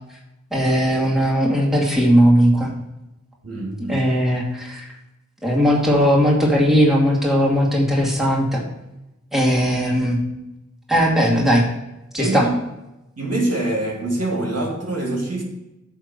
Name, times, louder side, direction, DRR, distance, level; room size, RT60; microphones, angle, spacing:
voice 1, 0.5-2.7 3.9-4.9 5.4-8.6 9.3-10.2 10.9-11.6 12.1-12.5, equal, ahead, -2 dB, 2.3 m, -18 dB
voice 2, 3.4-4.0 12.2-12.5 13.2-15.4, right 2 dB, 55° right, -1 dB, 2.2 m, -24 dB
9.0 x 3.6 x 6.8 m, 0.92 s
wide cardioid pair, 50°, 29 cm